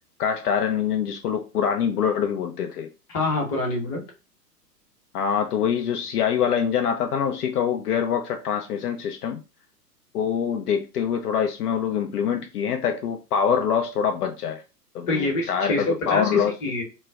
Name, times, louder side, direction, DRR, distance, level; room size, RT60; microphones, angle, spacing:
voice 1, 0.2-2.9 5.1-9.4 10.1-14.6 14.9-16.5, left 7 dB, 70° left, 0.5 m, -24 dB
voice 2, 3.1-4.0 15.1-16.8, left 2 dB, 30° left, 0.9 m, -26 dB
2.3 x 2.0 x 3.3 m
figure-of-eight pair, 115°, 49 cm